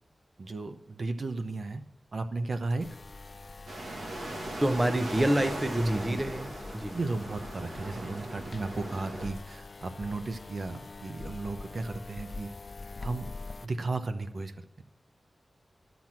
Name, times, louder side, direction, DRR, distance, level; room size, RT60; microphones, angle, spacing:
voice 1, 0.4-1.8 2.1-2.9 5.8-6.2 6.9-12.5 13.0-13.3 13.6-14.8, right 3 dB, 65° right, 8 dB, 0.8 m, -35 dB
sound 1, 2.8-13.7, left 3 dB, 50° left, 0.4 m, -44 dB
sound 2, 3.7-9.3, right 1 dB, 90° right, 1.7 m, -39 dB
voice 2, 4.6-6.9, right 1 dB, 25° right, 10 dB, 0.7 m, -27 dB
12.0 x 6.0 x 7.4 m, 0.81 s
wide cardioid pair, 70°, 0 cm